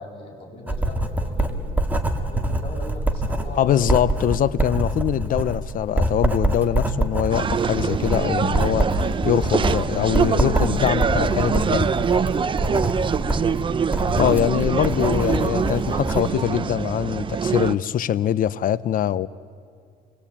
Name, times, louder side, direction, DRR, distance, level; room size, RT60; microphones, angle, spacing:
voice 1, 0.0-1.7 2.1-3.7 4.0-4.2 13.2-13.7, left 1 dB, 35° left, 7.9 m, -39 dB
Writing, 0.7-16.3, right 1 dB, 10° right, 1.9 m, -25 dB
voice 2, 3.6-11.9 14.2-19.3, left 10 dB, 55° left, 0.7 m, -23 dB
sound 1, 7.3-17.7, right 6 dB, 30° right, 0.6 m, -24 dB
29.0 x 21.5 x 8.6 m
cardioid pair, 110°, 17 cm